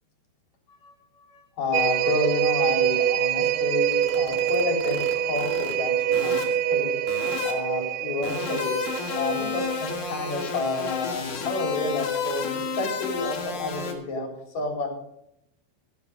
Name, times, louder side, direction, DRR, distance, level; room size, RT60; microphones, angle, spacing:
voice 1, 1.3-8.8 9.2-14.9, left 3 dB, 40° left, 2 dB, 4.9 m, -30 dB
sound 1, 1.7-11.5 11.9-12.0, right 10 dB, 80° right, 2.5 m, -26 dB
sound 2, 3.9-5.7 6.1-6.4 7.1-7.5 8.2-13.9, left 6 dB, 60° left, 3.6 m, -31 dB
12.5 x 12.0 x 5.1 m, 0.78 s
omnidirectional pair, 4.9 m